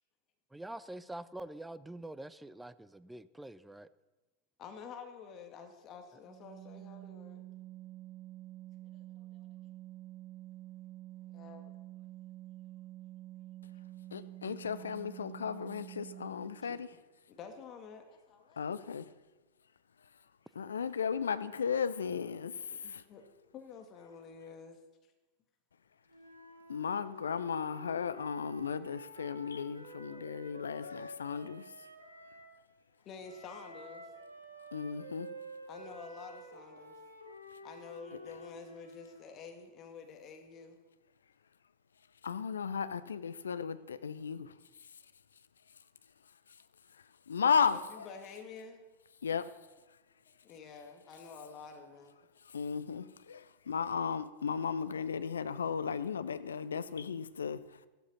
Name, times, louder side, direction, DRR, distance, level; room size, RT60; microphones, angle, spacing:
voice 1, 0.5-3.9, right 1 dB, 5° right, 0.6 m, -45 dB
voice 2, 4.6-7.4 8.9-9.5 11.3-11.7 14.8-14.9 16.6-16.8 17.3-18.6 22.7-23.2 23.5-24.8 30.1-30.8 33.0-34.1 35.7-37.0 37.6-40.8 47.7-48.8 50.4-52.2 53.0-53.1, left 5 dB, 30° left, 2.2 m, -50 dB
Organ, 6.3-16.8, right 15 dB, 25° right, 1.0 m, -49 dB
voice 3, 14.1-16.9 18.6-19.1 20.6-23.0 26.7-31.6 34.7-35.3 42.2-44.5 47.3-48.1 49.2-49.5 52.5-57.6, left 6 dB, 70° left, 0.8 m, -35 dB
Wind instrument woodwind instrument, 26.1-32.5 33.2-39.3, right 1 dB, 85° right, 2.6 m, -50 dB
14.5 x 12.5 x 5.6 m
figure-of-eight pair, 90°, 0 cm